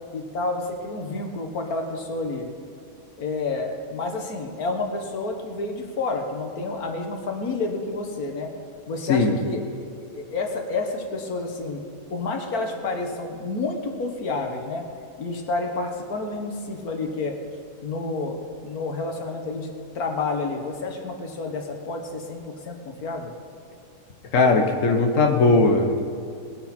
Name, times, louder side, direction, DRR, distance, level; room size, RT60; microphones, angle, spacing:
voice 1, 0.1-2.5 3.2-8.5 8.9-9.8 10.1-11.8 12.1-14.9 15.2-17.4 17.8-18.4 18.6-23.3, left 3 dB, 90° left, 3 dB, 1.9 m, -29 dB
voice 2, 24.3-26.0, left 3 dB, 60° left, 3 dB, 1.5 m, -18 dB
20.0 x 10.0 x 4.4 m, 2.5 s
omnidirectional pair, 1.5 m